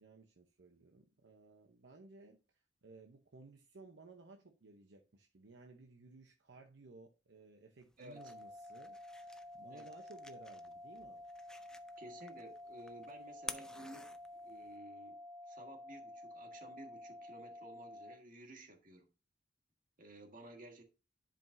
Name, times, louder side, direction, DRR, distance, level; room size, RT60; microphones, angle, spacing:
voice 1, 0.0-11.2, right 3 dB, 70° right, 0.8 m, -58 dB
sound 1, 7.8-14.8, left 1 dB, 5° left, 0.4 m, -53 dB
voice 2, 8.0-8.3 9.7-9.9 12.0-15.2 15.5-19.1 20.0-20.8, right 1 dB, 45° right, 1.6 m, -54 dB
sound 2, 8.2-18.2, left 1 dB, 15° right, 0.9 m, -51 dB
10.5 x 5.1 x 2.6 m
head